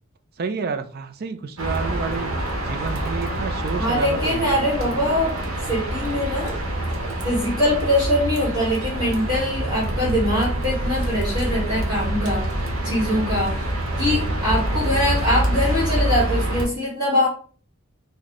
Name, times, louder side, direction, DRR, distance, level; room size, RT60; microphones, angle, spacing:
voice 1, 0.4-4.8, right 5 dB, 45° right, 8 dB, 0.4 m, -30 dB
sound 1, 1.6-16.7, right 1 dB, 65° right, 0.9 m, -26 dB
voice 2, 3.8-5.4 5.7-6.6 7.0-12.5 12.8-13.7 14.0-17.3, left 1 dB, 20° right, -7 dB, 1.5 m, -23 dB
4.0 x 2.1 x 3.0 m, 0.42 s
head